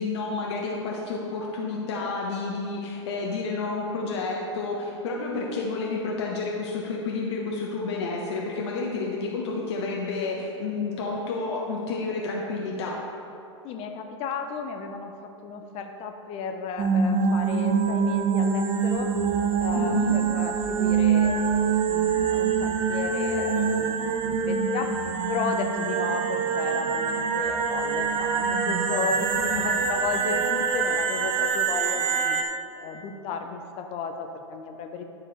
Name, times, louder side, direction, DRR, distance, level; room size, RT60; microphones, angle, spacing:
voice 1, 0.0-13.0 19.7-20.1 29.4-29.8, left 3 dB, 60° left, -2 dB, 1.2 m, -30 dB
voice 2, 13.6-15.1 15.4-19.1 19.6-25.0 25.3-32.4 32.8-35.0, left 5 dB, 40° left, 5 dB, 0.9 m, -34 dB
sound 1, 16.8-32.4, right 6 dB, 30° right, 0.7 m, -25 dB
11.5 x 4.9 x 4.3 m, 2.7 s
hypercardioid pair, 105°, 16 cm